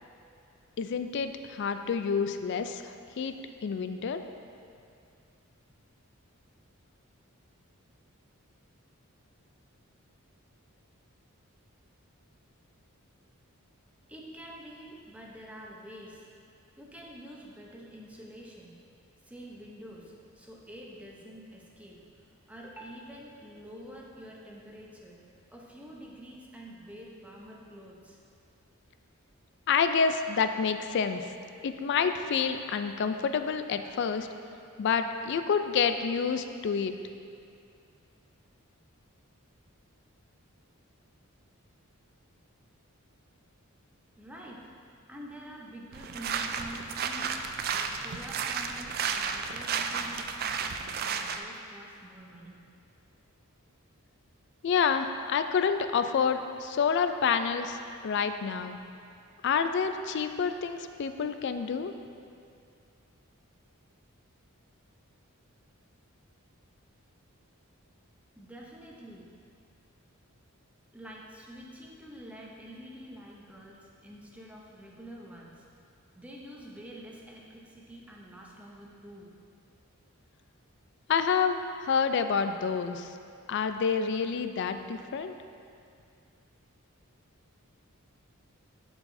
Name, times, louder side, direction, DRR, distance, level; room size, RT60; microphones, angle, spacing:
voice 1, 0.8-3.3 3.6-4.2 29.7-31.3 31.6-34.3 34.8-36.9 54.6-57.8 58.0-58.8 59.4-61.9 81.1-83.1 83.5-85.3, left 6 dB, 55° left, 9 dB, 0.3 m, -28 dB
voice 2, 14.1-16.3 16.8-18.8 19.2-22.0 22.5-25.2 25.5-28.2 44.2-44.7 45.1-47.4 47.7-50.7 51.0-52.6 68.4-69.3 70.9-75.7 76.1-79.4, equal, 5° right, -3 dB, 0.7 m, -47 dB
sound 1, 45.9-51.4, right 6 dB, 45° right, 0.3 m, -33 dB
11.5 x 4.7 x 2.6 m, 2.4 s
head